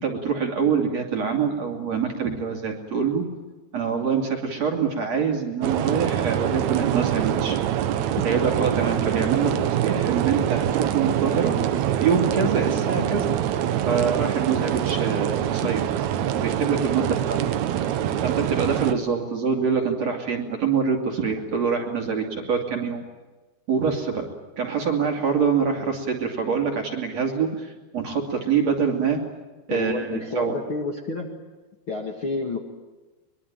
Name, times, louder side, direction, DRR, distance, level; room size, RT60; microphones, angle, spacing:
voice 1, 0.0-3.3 3.7-7.6 8.2-11.5 12.0-13.3 13.9-15.8 16.3-17.4 18.2-23.0 23.7-24.3 24.6-27.5 27.9-29.2 29.7-30.6, right 6 dB, 45° right, 1 dB, 3.5 m, -25 dB
sound 1, 5.6-18.9, right 10 dB, 75° right, 1.7 m, -24 dB
voice 2, 29.7-31.3 31.9-32.6, left 3 dB, 40° left, 0 dB, 2.2 m, -29 dB
23.5 x 22.5 x 8.9 m, 1.2 s
omnidirectional pair, 4.6 m